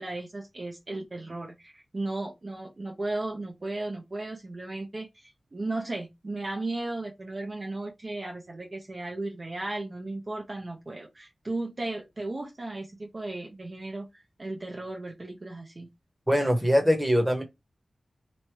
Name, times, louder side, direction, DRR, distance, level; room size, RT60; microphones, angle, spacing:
voice 1, 0.0-15.9, right 2 dB, 35° right, 0.7 m, -35 dB
voice 2, 16.3-17.4, equal, 5° right, 1.1 m, -22 dB
3.1 x 2.8 x 4.5 m
wide cardioid pair, 130°, 0 cm